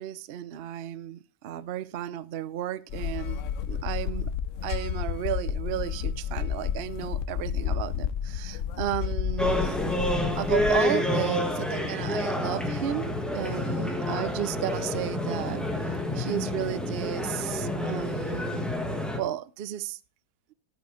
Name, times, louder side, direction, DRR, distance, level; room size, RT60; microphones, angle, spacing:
voice 1, 0.0-3.4 3.7-4.3 4.6-9.8 10.4-15.7 16.1-18.7 19.1-20.0, right 11 dB, 60° right, 0.6 m, -33 dB
sound 1, 2.9-10.8, left 8 dB, 60° left, 0.9 m, -31 dB
sound 2, 9.4-19.2, left 1 dB, ahead, 1.3 m, -28 dB
13.5 x 6.3 x 4.9 m
omnidirectional pair, 1.7 m